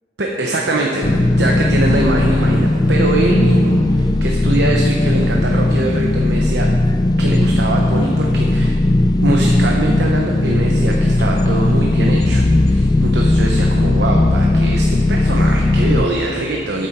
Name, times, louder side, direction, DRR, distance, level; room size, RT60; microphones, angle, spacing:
voice 1, 0.2-6.7 7.2-8.8 9.2-16.9, right 2 dB, 65° right, 0 dB, 1.0 m, -22 dB
sound 1, 1.0-16.1, left 1 dB, 20° left, 0.3 m, -16 dB
13.0 x 8.7 x 4.4 m, 2.4 s
head